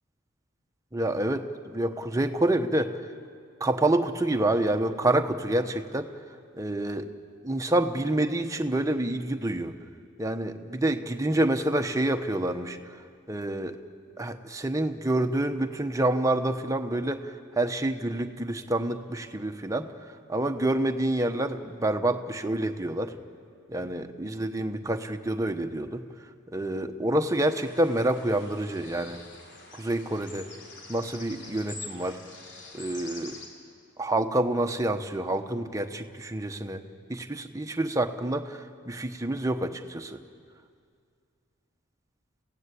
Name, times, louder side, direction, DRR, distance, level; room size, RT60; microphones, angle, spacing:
voice 1, 0.9-2.9 3.6-6.1 6.6-7.1 7.4-9.8 10.2-12.8 13.3-13.8 14.2-19.9 20.3-23.1 23.7-26.0 26.5-29.2 29.7-30.5 30.9-32.2 32.7-33.4 34.0-36.8 37.1-40.2, right 1 dB, 15° right, 6 dB, 1.0 m, -27 dB
sound 1, 27.4-33.5, left 3 dB, 60° left, 3.6 m, -45 dB
29.5 x 16.5 x 8.4 m, 2.2 s
head